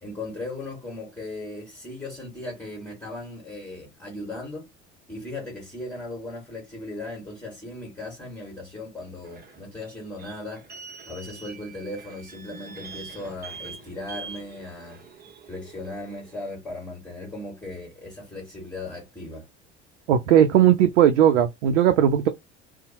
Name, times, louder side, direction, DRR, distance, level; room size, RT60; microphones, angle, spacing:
voice 1, 0.0-4.7 5.1-10.6 11.1-15.0 15.5-19.5, left 2 dB, 5° left, 1.5 m, -37 dB
sound 1, 9.2-16.5, right 5 dB, 25° right, 0.8 m, -44 dB
voice 2, 20.1-22.3, right 10 dB, 75° right, 0.5 m, -18 dB
2.7 x 2.1 x 2.9 m
hypercardioid pair, 65°, 35 cm